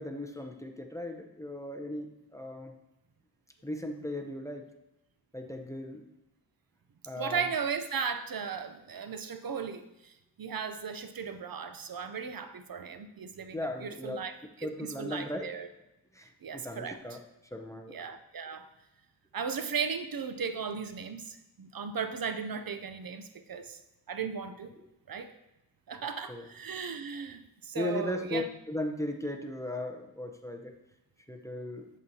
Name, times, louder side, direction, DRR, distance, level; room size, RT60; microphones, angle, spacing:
voice 1, 0.0-2.7 3.6-4.7 5.3-6.0 7.1-7.4 13.5-14.2 14.6-15.5 16.1-17.2 17.5-18.0 26.3-26.5 27.7-30.7 31.3-31.9, left 1 dB, 10° left, 4 dB, 0.6 m, -37 dB
voice 2, 7.2-14.3 14.6-15.7 16.4-17.0 17.9-18.7 19.3-23.8 24.1-24.7 25.1-25.3 25.9-28.5, right 6 dB, 60° right, 9 dB, 0.5 m, -36 dB
7.9 x 7.4 x 2.7 m, 0.92 s
wide cardioid pair, 100°, 40 cm